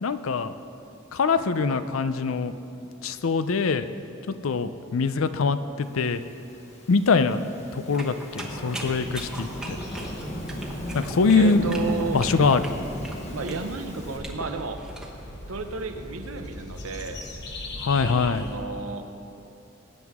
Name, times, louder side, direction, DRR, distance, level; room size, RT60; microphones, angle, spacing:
voice 1, 0.0-0.5 1.1-2.5 3.0-3.9 4.4-6.2 6.9-7.4 7.7-9.8 10.9-11.6 12.1-12.6 17.8-18.5, left 4 dB, 75° left, 12 dB, 0.5 m, -23 dB
Thunderstorm / Rain, 6.5-14.2, equal, 30° left, 1.5 m, -35 dB
sound 1, 7.9-15.1, right 2 dB, 5° right, 1.0 m, -40 dB
sound 2, 8.8-18.6, left 1 dB, 55° left, 1.2 m, -41 dB
voice 2, 11.3-12.2 13.3-14.8 15.5-17.2 18.0-19.1, right 4 dB, 80° right, 7 dB, 0.8 m, -33 dB
19.5 x 9.2 x 3.6 m, 2.9 s
head